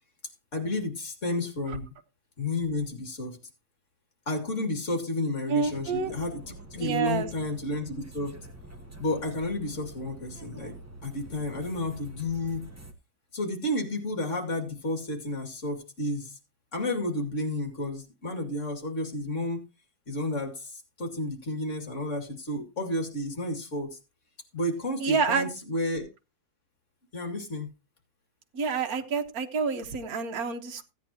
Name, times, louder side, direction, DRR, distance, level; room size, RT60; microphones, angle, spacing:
voice 1, 0.5-1.9 2.4-3.4 4.3-8.5 9.0-10.7 11.0-12.7 13.3-16.4 16.7-19.7 20.1-24.0 24.5-26.1 27.1-27.7, left 1 dB, 45° left, 2.7 m, -31 dB
voice 2, 5.5-6.1 6.8-7.3 25.0-25.5 28.5-30.8, right 5 dB, 65° right, 1.7 m, -28 dB
sound 1, 5.6-12.9, right 2 dB, 10° right, 1.0 m, -46 dB
16.0 x 9.2 x 2.9 m
omnidirectional pair, 1.7 m